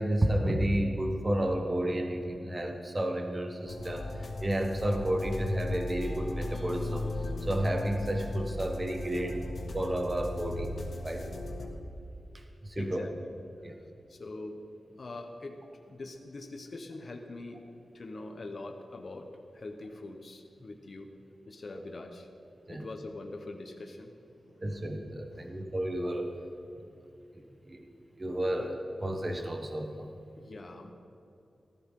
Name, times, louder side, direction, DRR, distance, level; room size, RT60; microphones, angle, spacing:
voice 1, 0.0-7.1 7.4-9.4 9.7-10.7 11.0-11.3 12.3-13.0 13.6-13.8 22.7-22.9 24.6-26.3 27.3-27.9 28.2-30.1, right 1 dB, 20° right, 3 dB, 1.1 m, -31 dB
sound 1, 3.7-11.7, left 2 dB, 60° left, 1.8 m, -37 dB
sound 2, 6.0-10.2, left 2 dB, 25° left, 1.8 m, -51 dB
voice 2, 12.8-13.3 14.1-14.6 15.0-15.6 15.9-17.6 17.9-21.1 21.5-22.3 22.7-24.1 24.4-24.6 25.3-25.4 28.6-28.7 30.4-30.9, left 2 dB, 40° left, 3 dB, 1.1 m, -43 dB
18.5 x 14.0 x 3.8 m, 2.7 s
wide cardioid pair, 175°, 0 cm